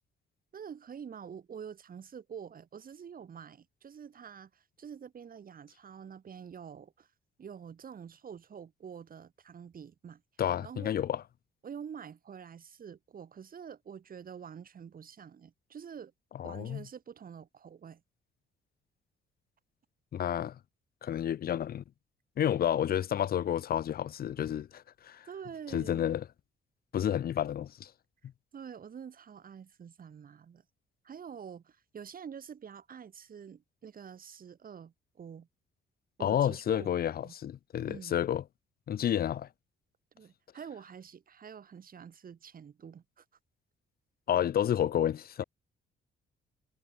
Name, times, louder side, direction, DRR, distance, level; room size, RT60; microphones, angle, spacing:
voice 1, 0.5-7.1 7.4-10.2 10.6-10.9 11.6-16.1 16.4-18.0 22.6-22.7 25.3-26.1 28.5-30.6 31.0-35.5 36.2-36.9 37.2-37.3 37.9-38.2 40.1-43.2, right 7 dB, 45° right, 1.9 m, -47 dB
voice 2, 10.4-11.2 16.4-16.8 20.1-20.6 21.0-21.8 22.4-25.3 25.7-26.2 26.9-27.9 36.2-38.4 38.9-39.5 44.3-45.4, left 10 dB, 50° left, 0.6 m, -30 dB
cardioid pair, 90°, 20 cm